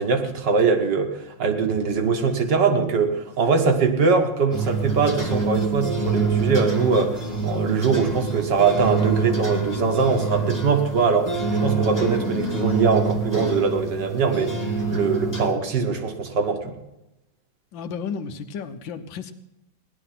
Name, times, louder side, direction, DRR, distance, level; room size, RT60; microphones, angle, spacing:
voice 1, 0.0-14.6 14.9-16.8, right 5 dB, 65° right, 5 dB, 1.9 m, -22 dB
sound 1, 4.5-15.5, right 4 dB, 10° left, 1.4 m, -26 dB
voice 2, 17.7-19.3, left 6 dB, 75° left, 9 dB, 1.6 m, -33 dB
16.5 x 11.0 x 5.8 m, 0.92 s
omnidirectional pair, 2.1 m